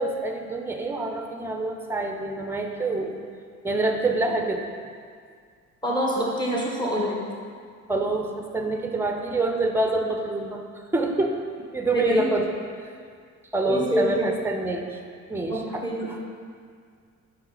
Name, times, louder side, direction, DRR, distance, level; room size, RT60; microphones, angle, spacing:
voice 1, 0.0-3.2 3.6-4.7 7.9-10.6 10.9-11.4 11.7-12.5 13.5-14.8 15.3-16.2, right 2 dB, 10° right, 3 dB, 0.6 m, -26 dB
voice 2, 5.8-7.2 11.9-12.3 13.7-14.1 15.5-16.1, equal, 15° left, -4 dB, 1.4 m, -25 dB
5.4 x 4.4 x 4.0 m, 2.1 s
cardioid pair, 90°, 30 cm